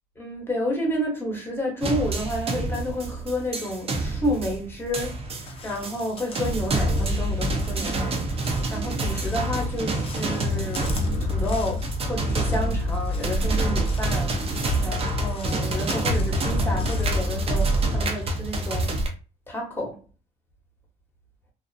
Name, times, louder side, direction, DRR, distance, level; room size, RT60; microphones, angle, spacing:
voice 1, 0.2-5.1 5.6-19.0 19.5-20.0, equal, 10° left, 0.9 m, -30 dB
sound 1, 1.8-19.1, right 1 dB, 35° right, 0.6 m, -26 dB
Crow, 5.2-18.3, left 4 dB, 35° left, 0.6 m, -45 dB
2.5 x 2.0 x 2.6 m
cardioid pair, 110°, 17 cm